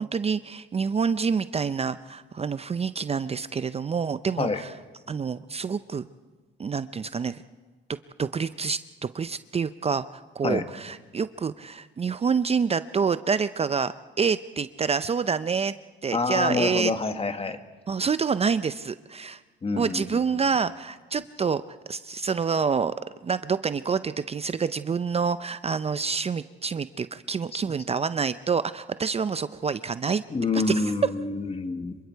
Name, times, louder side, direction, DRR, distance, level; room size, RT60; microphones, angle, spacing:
voice 1, 0.0-4.7 5.1-6.1 6.6-7.4 8.2-15.7 16.0-16.9 17.9-19.4 19.8-21.6 21.9-22.9 23.2-30.2 30.5-30.7, right 5 dB, 30° right, 14 dB, 0.5 m, -27 dB
voice 2, 16.1-17.6 19.6-20.2 30.3-32.0, left 3 dB, 30° left, 8 dB, 1.6 m, -27 dB
26.5 x 23.5 x 4.6 m, 1.4 s
cardioid pair, 90°, 20 cm